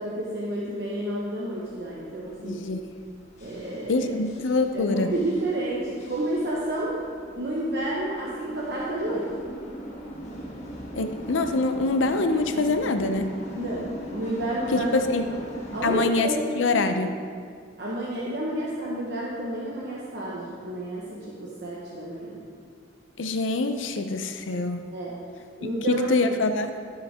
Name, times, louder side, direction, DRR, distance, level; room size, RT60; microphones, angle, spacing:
voice 1, 0.0-2.6 3.4-4.1 4.7-6.9 7.3-9.3 13.5-14.9 15.2-15.4 15.7-16.5 16.7-16.8 17.8-22.4 24.9-25.1 25.6-26.3, right 1 dB, 55° right, -6 dB, 1.2 m, -30 dB
sound 1, 1.7-16.1, equal, 35° left, 1.4 m, -40 dB
voice 2, 2.4-2.8 3.9-5.2 10.9-13.4 14.7-15.3 15.8-17.2 23.2-25.0 25.6-26.8, left 3 dB, 85° left, 8 dB, 0.6 m, -25 dB
15.5 x 6.4 x 3.6 m, 2.1 s
head